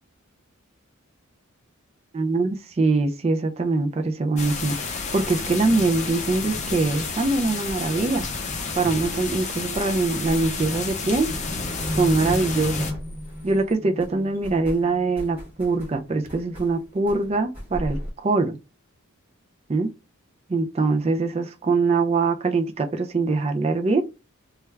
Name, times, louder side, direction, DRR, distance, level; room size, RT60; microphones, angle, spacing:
voice 1, 2.1-8.2 8.7-11.3 12.0-12.9 13.4-18.6 19.7-19.9 20.5-24.0, right 3 dB, 30° right, 0.3 m, -23 dB
sound 1, 4.4-12.9, left 4 dB, 30° left, 0.5 m, -31 dB
sound 2, 7.6-13.7 14.0-18.1, equal, 10° right, 1.7 m, -40 dB
sound 3, 8.7-15.5 15.9-16.4 17.0-17.1, equal, 75° right, 0.8 m, -35 dB
3.2 x 2.3 x 3.2 m
head